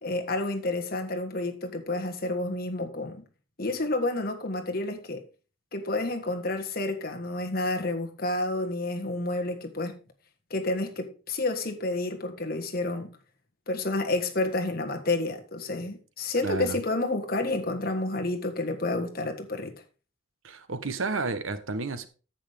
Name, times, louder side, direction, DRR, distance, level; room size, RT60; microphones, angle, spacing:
voice 1, 0.0-3.2 3.6-5.2 5.7-10.0 10.5-13.2 13.7-19.8, left 2 dB, 45° left, 1.5 m, -30 dB
voice 2, 16.4-16.8 20.4-22.1, right 3 dB, 80° right, 1.1 m, -31 dB
10.0 x 8.1 x 3.5 m
head